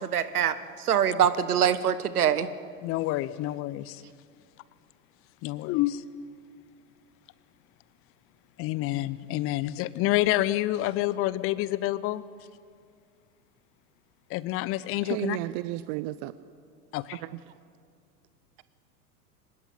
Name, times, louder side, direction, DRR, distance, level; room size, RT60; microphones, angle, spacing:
voice 1, 0.0-2.5, right 9 dB, 70° right, 1.4 m, -24 dB
voice 2, 2.8-4.0 5.4-6.0 8.6-12.2 14.3-15.4 16.9-17.2, left 16 dB, 30° left, 0.7 m, -28 dB
voice 3, 15.0-16.5 17.2-17.4, right 17 dB, 35° right, 0.6 m, -33 dB
23.5 x 20.5 x 8.6 m
figure-of-eight pair, 90°, 46 cm